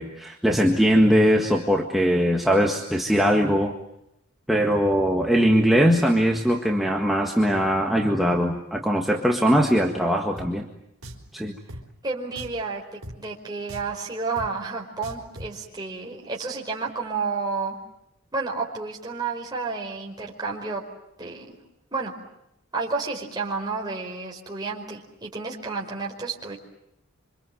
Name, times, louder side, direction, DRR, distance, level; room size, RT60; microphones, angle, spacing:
voice 1, 0.0-3.7 4.5-10.6 11.3-11.6, equal, ahead, 0 dB, 1.7 m, -21 dB
Drum, 10.4-10.5 11.0-11.3 11.7-11.8 12.3-12.6 13.0-13.2 13.7-13.9 14.4-14.5 15.0-15.5, equal, 75° right, 4.1 m, -39 dB
voice 2, 12.0-17.8 18.3-20.8 21.2-21.6 21.9-22.1 22.7-26.6, right 4 dB, 20° right, -2 dB, 5.0 m, -31 dB
27.5 x 26.0 x 7.8 m, 0.82 s
head